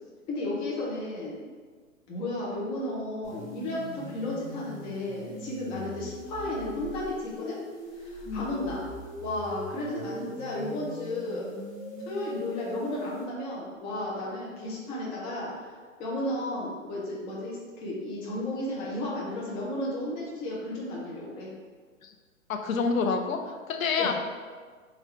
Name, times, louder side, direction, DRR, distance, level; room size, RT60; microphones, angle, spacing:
voice 1, 0.3-1.4 2.1-7.6 7.9-8.9 9.2-11.5 12.1-21.5 24.0-24.1, left 1 dB, 15° left, -5 dB, 0.4 m, -33 dB
sound 1, 3.2-13.2, equal, 20° right, 1.3 m, -41 dB
voice 2, 22.5-23.4 23.7-24.1, left 5 dB, 75° left, 5 dB, 0.6 m, -27 dB
3.4 x 2.4 x 4.3 m, 1.5 s
hypercardioid pair, 125°, 40 cm